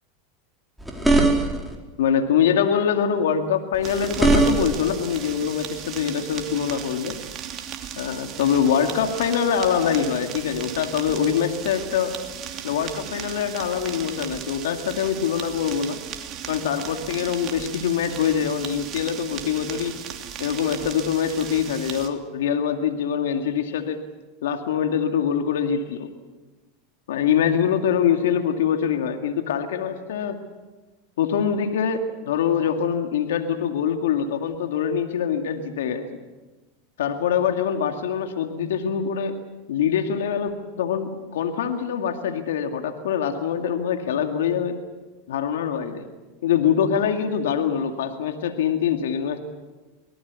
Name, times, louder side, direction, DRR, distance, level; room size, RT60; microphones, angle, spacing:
sound 1, 0.8-1.7 3.7-4.9, right 2 dB, 5° right, 4.5 m, -20 dB
voice 1, 2.0-7.2 8.0-12.1 12.6-16.0 16.5-19.9 20.4-24.0 24.4-26.1 27.1-30.4 31.2-36.1 37.0-39.4 39.7-44.8 45.3-46.0 46.4-49.4, left 8 dB, 80° left, 6 dB, 2.2 m, -24 dB
sound 2, 3.8-22.1, right 9 dB, 45° right, 2.9 m, -36 dB
24.5 x 19.0 x 8.3 m, 1.2 s
hypercardioid pair, 105°, 0 cm